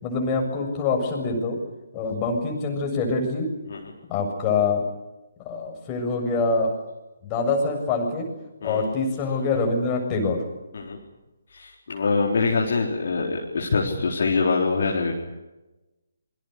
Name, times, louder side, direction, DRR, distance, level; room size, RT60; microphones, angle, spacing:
voice 1, 0.0-1.6 1.9-3.5 4.1-4.8 5.5-6.7 7.2-8.3 8.6-10.4, left 3 dB, 20° left, 2 dB, 7.2 m, -25 dB
voice 2, 11.5-15.1, left 4 dB, 50° left, -1 dB, 4.1 m, -24 dB
27.5 x 24.5 x 6.7 m, 1.0 s
figure-of-eight pair, 140°, 0 cm